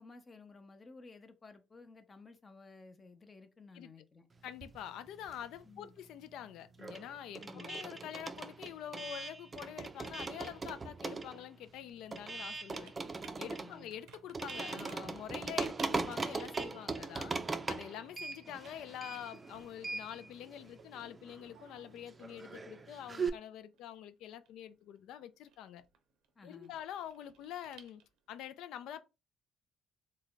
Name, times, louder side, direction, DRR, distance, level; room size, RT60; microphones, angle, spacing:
voice 1, 0.0-4.2 5.7-5.9 7.4-7.8 13.4-13.9 26.4-26.7, left 3 dB, 30° left, 0.6 m, -55 dB
voice 2, 4.4-12.9 13.4-17.3 17.7-25.8 26.4-28.0 28.3-29.0, left 10 dB, 80° left, 0.3 m, -46 dB
sound 1, 4.5-5.7 6.0-23.3, right 4 dB, 25° right, 0.4 m, -40 dB
Computer keyboard, 11.5-28.4, right 7 dB, 80° right, 0.6 m, -62 dB
3.2 x 2.2 x 3.9 m
cardioid pair, 95°, 0 cm